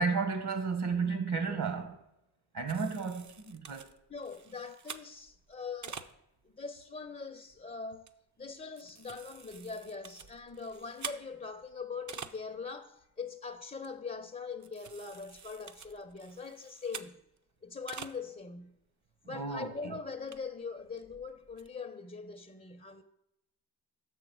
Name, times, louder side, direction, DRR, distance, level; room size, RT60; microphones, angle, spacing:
voice 1, 0.0-2.0 2.5-3.9 19.3-20.0, right 4 dB, 55° right, 1.2 m, -33 dB
sound 1, 2.7-6.5 7.1-7.2 7.5-7.6 8.0-8.1 8.5-12.7 13.0-13.1 13.4-13.5 13.8-14.2 14.6-17.4 17.6-18.2 18.6-18.7 19.1-19.2 19.5-19.6 20.1-21.7, right 6 dB, 40° right, 0.6 m, -48 dB
voice 2, 4.1-6.0 6.4-8.1 8.4-17.2 17.6-18.8 19.3-23.0, left 4 dB, 20° left, 0.6 m, -42 dB
6.5 x 5.0 x 6.1 m
supercardioid pair, 45°, 47 cm